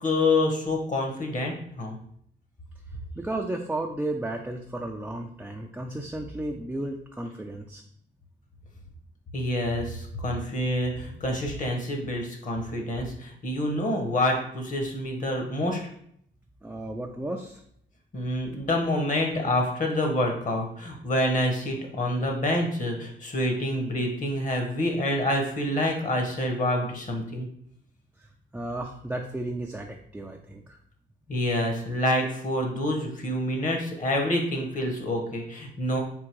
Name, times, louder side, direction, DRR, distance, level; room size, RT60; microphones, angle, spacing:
voice 1, 0.0-2.0 9.3-15.8 18.1-27.5 31.3-36.0, left 1 dB, 40° left, 2 dB, 1.1 m, -27 dB
voice 2, 3.2-7.8 16.6-17.6 28.2-28.3 28.5-30.8, right 1 dB, 5° right, 1 dB, 0.4 m, -33 dB
3.7 x 2.6 x 4.6 m, 0.67 s
cardioid pair, 90°, 20 cm